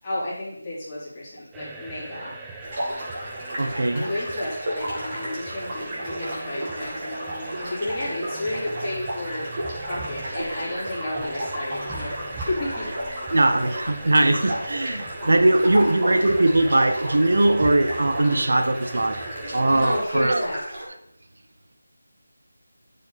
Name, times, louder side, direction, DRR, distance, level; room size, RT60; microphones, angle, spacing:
voice 1, 0.0-2.4 3.9-9.5 9.9-12.9 19.7-20.6, left 1 dB, 20° left, -9 dB, 3.6 m, -32 dB
sound 1, 1.5-20.0, right 3 dB, 10° right, 0.6 m, -40 dB
sound 2, 2.6-20.8, right 1 dB, 35° right, 3.8 m, -33 dB
voice 2, 3.6-4.1 13.3-19.2 19.5-20.5, right 2 dB, 70° right, 7 dB, 1.1 m, -20 dB
9.9 x 7.1 x 4.1 m, 0.73 s
figure-of-eight pair, 170°, 0 cm